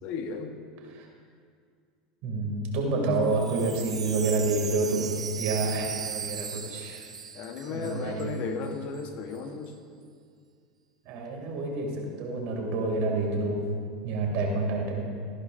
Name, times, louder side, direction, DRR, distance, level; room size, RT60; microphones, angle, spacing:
voice 1, 0.0-0.5 7.3-9.7, left 5 dB, 50° left, 5 dB, 1.2 m, -35 dB
voice 2, 2.2-7.1 7.7-8.3 11.0-13.6 14.0-15.1, right 3 dB, 55° right, 0 dB, 2.6 m, -28 dB
Wind chime, 3.2-8.4 8.6-8.7 8.9-9.4, right 6 dB, 90° right, 0.5 m, -37 dB
14.5 x 11.0 x 2.7 m, 2.2 s
hypercardioid pair, 85°, 3 cm